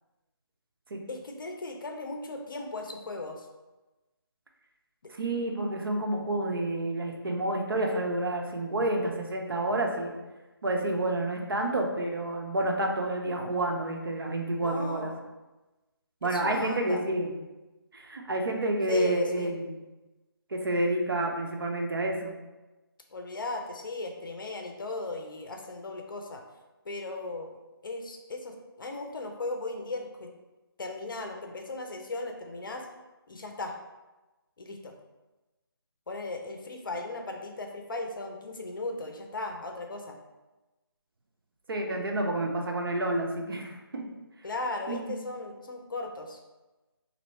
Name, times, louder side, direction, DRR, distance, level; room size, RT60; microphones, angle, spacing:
voice 1, 1.1-3.5 14.6-15.3 16.2-17.0 18.9-19.5 23.1-26.4 26.8-27.5 27.8-30.3 30.8-32.9 33.3-33.8 34.6-34.9 36.1-40.2 44.4-46.4, left 2 dB, 60° left, 3 dB, 0.6 m, -37 dB
voice 2, 5.1-10.1 10.6-15.1 16.2-17.3 17.9-19.8 20.5-22.3 41.7-44.0 44.9-45.1, right 1 dB, 65° right, 2 dB, 0.7 m, -29 dB
3.0 x 2.9 x 4.1 m, 1.1 s
figure-of-eight pair, 155°, 13 cm